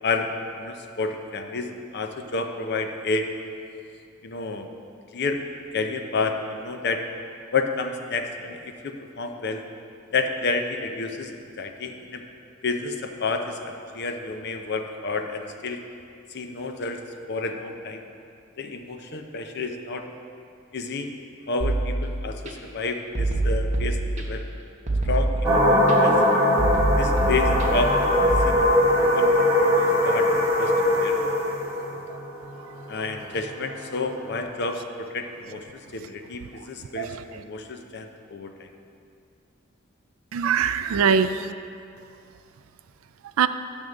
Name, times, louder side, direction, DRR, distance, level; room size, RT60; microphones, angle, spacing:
voice 1, 0.0-3.3 4.2-4.7 5.1-5.4 5.7-7.0 7.5-9.6 10.1-11.3 11.6-12.2 12.6-15.8 16.3-17.0 17.3-18.0 18.6-20.1 20.7-21.1 21.5-24.4 25.0-26.2 27.0-27.9 28.4-30.3 30.6-31.2 32.9-37.1 37.3-38.7, left 3 dB, 55° left, 5 dB, 0.6 m, -30 dB
sound 1, 21.6-22.5 23.1-24.5 24.9-25.9 26.6-28.5, right 2 dB, 35° right, 1.0 m, -25 dB
sound 2, 25.4-34.3, left 1 dB, 15° right, 1.3 m, -21 dB
voice 2, 37.0-37.4 40.3-41.5 43.4-43.5, right 6 dB, 85° right, 11 dB, 0.4 m, -23 dB
9.2 x 3.6 x 6.4 m, 2.5 s
head